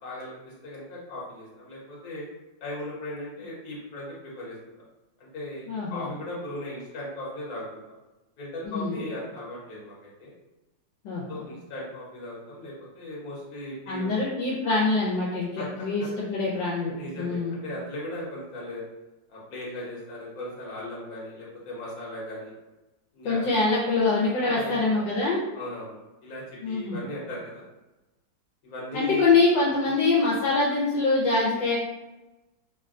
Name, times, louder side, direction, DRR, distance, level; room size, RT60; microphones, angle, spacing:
voice 1, 0.0-2.2 2.6-4.6 5.2-7.8 8.4-10.3 11.3-14.1 15.6-15.7 16.0-16.1 16.9-18.8 19.3-22.5 23.1-23.6 24.4-25.0 25.5-27.6 28.6-29.2 29.8-29.9, left 1 dB, 55° left, -5 dB, 1.3 m, -38 dB
voice 2, 5.7-6.1 8.6-9.0 11.0-11.4 13.9-17.5 23.2-25.4 26.6-27.1 28.9-31.8, left 3 dB, 75° left, -6 dB, 1.3 m, -24 dB
3.4 x 2.2 x 2.4 m, 1.0 s
omnidirectional pair, 2.0 m